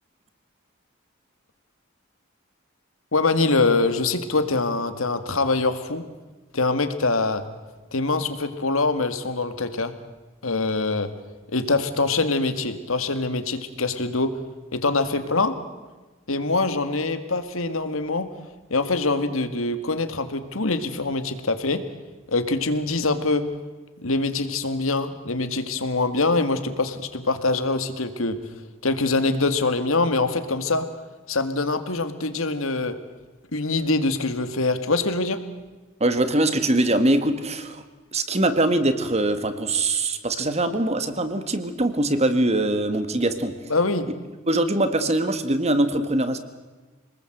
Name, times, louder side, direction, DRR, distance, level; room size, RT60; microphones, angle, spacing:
voice 1, 3.1-6.1 6.5-7.4 7.9-9.9 10.4-11.1 11.5-14.3 14.7-15.5 16.3-18.3 18.7-21.8 22.3-23.4 24.0-28.4 28.8-30.9 31.3-33.0 33.5-35.4 43.7-44.1, left 3 dB, 75° left, 10 dB, 2.0 m, -24 dB
voice 2, 36.0-37.8 38.1-43.5 44.5-46.4, right 1 dB, 30° right, 10 dB, 1.8 m, -22 dB
26.5 x 20.0 x 7.9 m, 1.3 s
head